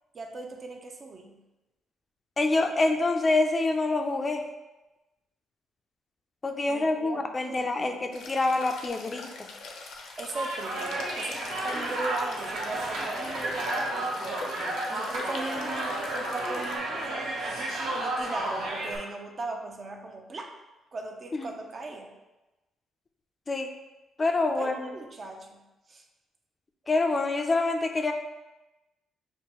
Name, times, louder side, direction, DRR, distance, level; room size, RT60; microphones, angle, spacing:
voice 1, 0.1-1.4 6.7-8.2 10.2-11.4 11.6-17.3 17.9-20.5 20.9-22.1 24.5-25.6 25.9-26.0, right 3 dB, 40° right, 3 dB, 0.6 m, -38 dB
voice 2, 2.4-4.4 6.4-9.5 21.3-21.5 23.5-23.7 24.2-24.7 26.9-28.1, left 2 dB, 30° left, 5 dB, 0.4 m, -26 dB
sound 1, 8.1-16.8, left 3 dB, 80° left, 0.6 m, -43 dB
sound 2, 10.3-19.0, right 1 dB, 85° right, 1.0 m, -32 dB
6.4 x 2.2 x 3.0 m, 1.1 s
cardioid pair, 90°, 0 cm